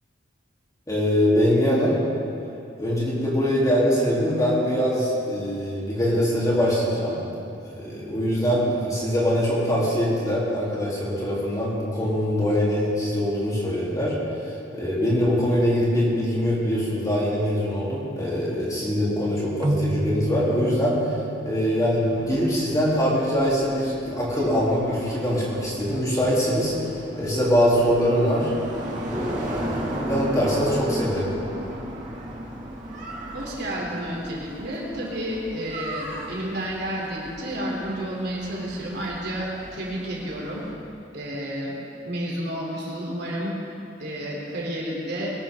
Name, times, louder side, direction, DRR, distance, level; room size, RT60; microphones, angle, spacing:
voice 1, 0.9-2.0 2.8-7.2 7.7-14.2 14.7-21.0 21.5-26.7 27.2-28.5 29.0-31.3, equal, 20° left, -7 dB, 3.6 m, -23 dB
sound 1, 19.6-23.1, right 1 dB, 20° right, 0.4 m, -31 dB
sound 2, 22.0-40.7, right 1 dB, 40° right, 2.7 m, -36 dB
voice 2, 33.3-40.6 41.1-41.8 42.1-43.5 44.0-45.3, equal, 60° right, -4 dB, 3.7 m, -31 dB
22.0 x 12.5 x 3.9 m, 2.6 s
head